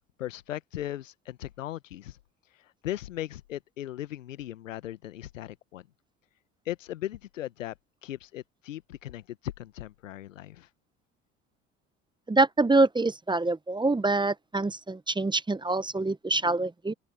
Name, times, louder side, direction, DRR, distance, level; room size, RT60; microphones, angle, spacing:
voice 1, 0.2-2.2 2.8-5.8 6.7-7.7 8.0-10.7, left 13 dB, 85° left, 1.2 m, -37 dB
voice 2, 12.3-16.9, right 2 dB, 10° right, 1.0 m, -25 dB
open air
hypercardioid pair, 60°, 38 cm